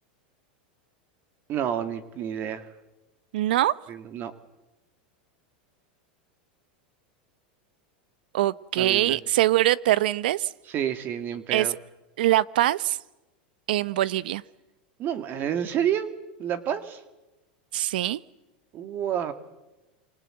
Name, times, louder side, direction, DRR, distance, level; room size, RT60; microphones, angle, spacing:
voice 1, 1.5-2.7 3.9-4.3 8.8-9.2 10.7-11.7 15.0-16.1 16.4-17.0 18.7-19.3, right 9 dB, 40° right, 10 dB, 2.2 m, -29 dB
voice 2, 3.3-3.7 8.3-10.5 11.5-11.7 12.2-13.0 13.7-14.4 17.7-18.2, right 14 dB, 75° right, 19 dB, 0.9 m, -23 dB
28.0 x 25.0 x 7.9 m, 1.1 s
supercardioid pair, 120°, 5 cm